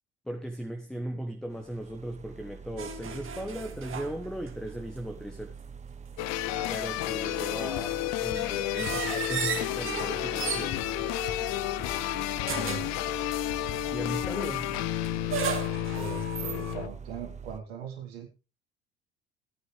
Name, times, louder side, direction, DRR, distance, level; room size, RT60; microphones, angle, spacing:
voice 1, 0.2-5.5 6.7-10.8 13.9-14.7, right 1 dB, ahead, 1.4 m, -37 dB
sound 1, 1.5-17.6, right 6 dB, 25° right, 1.0 m, -44 dB
sound 2, 2.8-4.7 5.0-5.1 6.5-11.9 12.4-13.0 14.7-16.7, right 7 dB, 40° right, 2.3 m, -36 dB
sound 3, 6.2-16.9, left 14 dB, 60° left, 0.7 m, -31 dB
voice 2, 12.5-13.0 15.9-18.3, right 7 dB, 80° right, 2.3 m, -40 dB
17.5 x 9.5 x 3.4 m
hypercardioid pair, 65°, 30 cm